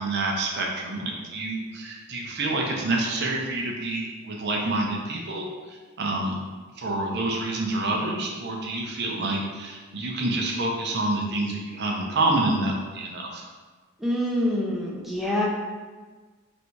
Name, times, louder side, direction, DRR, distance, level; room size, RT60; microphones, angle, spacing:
voice 1, 0.0-5.5 6.0-6.4 6.8-13.4, right 2 dB, 50° right, -1 dB, 0.7 m, -27 dB
voice 2, 14.0-15.5, left 1 dB, ahead, -4 dB, 0.6 m, -26 dB
3.3 x 2.7 x 4.5 m, 1.4 s
head